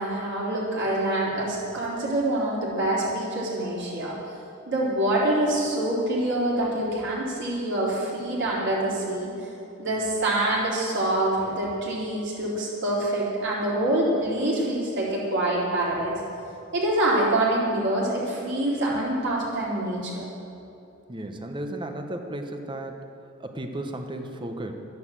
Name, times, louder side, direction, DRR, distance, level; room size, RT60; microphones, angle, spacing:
voice 1, 0.0-4.1 4.7-9.3 9.8-16.2 16.7-20.2, right 1 dB, 60° right, -5 dB, 3.9 m, -25 dB
voice 2, 21.1-23.1 23.4-24.8, right 1 dB, 25° right, 5 dB, 1.1 m, -34 dB
12.5 x 10.5 x 7.5 m, 2.8 s
head